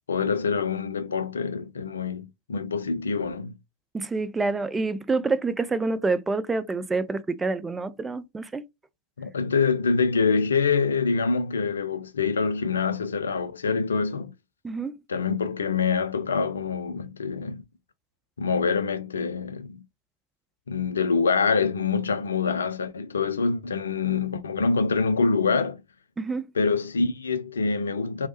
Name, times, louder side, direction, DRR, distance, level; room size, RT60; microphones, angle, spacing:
voice 1, 0.1-3.5 9.2-14.3 15.1-17.6 18.4-19.8 20.7-25.8 26.6-28.3, left 5 dB, 70° left, 0.3 m, -25 dB
voice 2, 3.9-8.6 14.6-14.9 26.2-26.5, right 3 dB, 15° right, 0.3 m, -27 dB
3.0 x 2.0 x 2.9 m
figure-of-eight pair, 90°, 0 cm